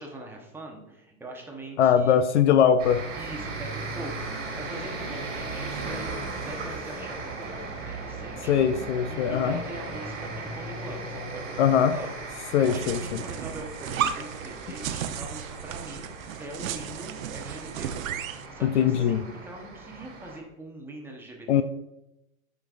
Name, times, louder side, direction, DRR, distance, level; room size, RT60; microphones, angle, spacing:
voice 1, 0.0-2.2 3.2-6.1 6.4-8.6 9.1-12.1 12.4-18.0 18.5-21.6, right 1 dB, 5° right, 0 dB, 0.8 m, -42 dB
voice 2, 1.8-3.1 8.5-9.6 11.6-12.0 12.5-13.2 18.6-19.2 21.5-21.6, left 8 dB, 55° left, 11 dB, 0.5 m, -21 dB
sound 1, 2.8-20.4, right 3 dB, 20° right, 1.8 m, -37 dB
sound 2, 12.6-18.5, right 9 dB, 75° right, 0.7 m, -34 dB
9.5 x 5.2 x 2.4 m, 0.89 s
hypercardioid pair, 135°, 42 cm